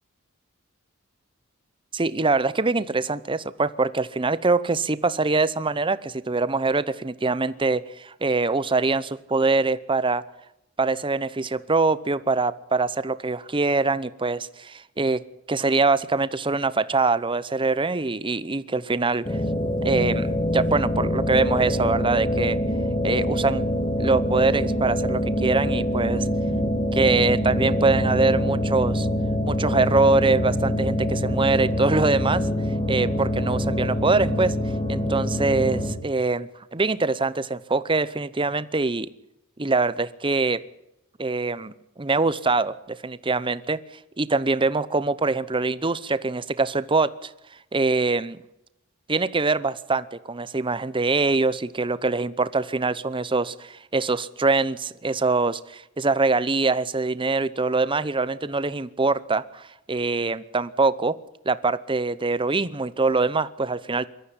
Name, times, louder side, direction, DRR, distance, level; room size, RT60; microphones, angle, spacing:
voice 1, 1.9-10.2 10.8-15.2 15.5-19.4 19.8-22.6 23.0-23.7 24.0-26.3 26.9-29.1 29.5-32.5 32.9-34.6 34.9-39.1 39.6-40.6 41.2-43.8 44.2-47.3 47.7-48.4 49.1-61.2 61.4-64.1, right 3 dB, 25° right, 16 dB, 0.8 m, -23 dB
sound 1, 19.2-35.9, equal, 25° left, 2.4 m, -25 dB
22.0 x 13.5 x 9.8 m, 0.87 s
head